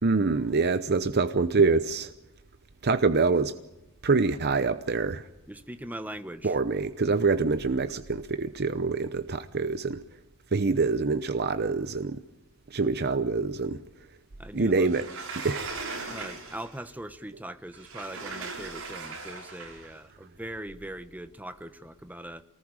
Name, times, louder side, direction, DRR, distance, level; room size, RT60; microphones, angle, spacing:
voice 1, 0.0-2.1 2.8-3.5 4.0-5.3 6.4-10.0 10.5-12.2 12.7-13.8 14.5-15.0 15.4-15.7, right 4 dB, 50° right, 0.8 m, -25 dB
voice 2, 5.5-6.6 14.4-14.9 16.1-22.4, right 1 dB, 10° right, 1.1 m, -41 dB
Sliding door, 14.9-16.8 17.7-19.9, right 4 dB, 70° right, 6.4 m, -39 dB
24.5 x 19.5 x 8.9 m
head